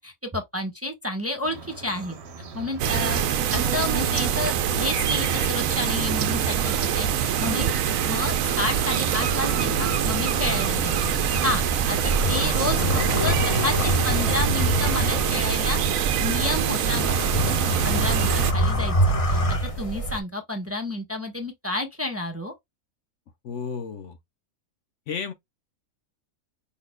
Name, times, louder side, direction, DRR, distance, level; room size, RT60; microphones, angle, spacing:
voice 1, 0.0-2.2 2.5-3.2 3.5-7.7 8.0-12.8 13.2-15.8 16.2-17.2 17.6-18.9 19.3-19.4 19.8-22.5, left 2 dB, 10° right, 0.9 m, -30 dB
sound 1, 1.4-13.3, right 5 dB, 55° right, 1.1 m, -38 dB
sound 2, 2.8-18.5, right 9 dB, 75° right, 1.0 m, -24 dB
sound 3, 9.4-20.2, right 1 dB, 30° left, 0.8 m, -26 dB
voice 2, 23.4-24.2 25.1-25.3, left 6 dB, 60° left, 1.0 m, -32 dB
5.2 x 4.2 x 2.2 m
omnidirectional pair, 1.5 m